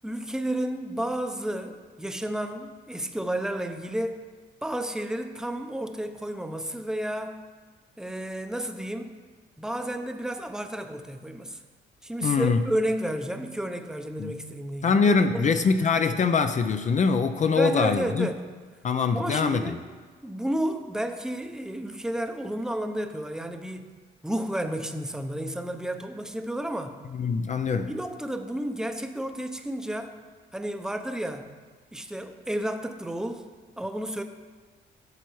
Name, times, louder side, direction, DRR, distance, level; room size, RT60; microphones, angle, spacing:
voice 1, 0.0-4.2 4.6-7.4 8.0-9.1 9.6-11.6 12.0-15.0 15.3-15.5 17.5-18.4 19.1-19.8 20.2-23.9 24.2-26.9 27.9-30.2 30.5-31.5 31.9-33.5 33.8-34.2, right 1 dB, 5° right, 6 dB, 0.6 m, -31 dB
voice 2, 12.2-12.6 14.2-14.4 14.8-18.3 18.8-19.8 27.1-27.9, left 5 dB, 40° left, 8 dB, 0.4 m, -23 dB
12.5 x 6.9 x 3.1 m, 1.4 s
cardioid pair, 90°, 20 cm